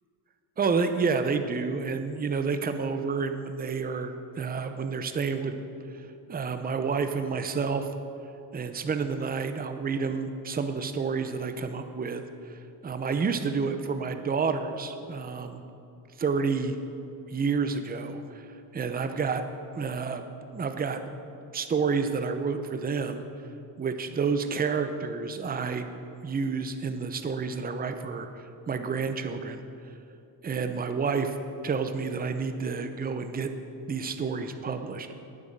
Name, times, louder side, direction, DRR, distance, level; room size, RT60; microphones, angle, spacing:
voice 1, 0.6-5.7 6.3-7.9 8.5-15.6 16.2-16.7 17.3-18.5 18.7-19.4 19.7-20.3 20.5-21.0 21.5-23.2 23.8-25.9 26.2-29.6 30.4-31.4 31.6-33.5 33.9-35.1, right 5 dB, 20° right, 8 dB, 0.7 m, -29 dB
9.6 x 7.4 x 8.1 m, 2.7 s
cardioid pair, 90°, 43 cm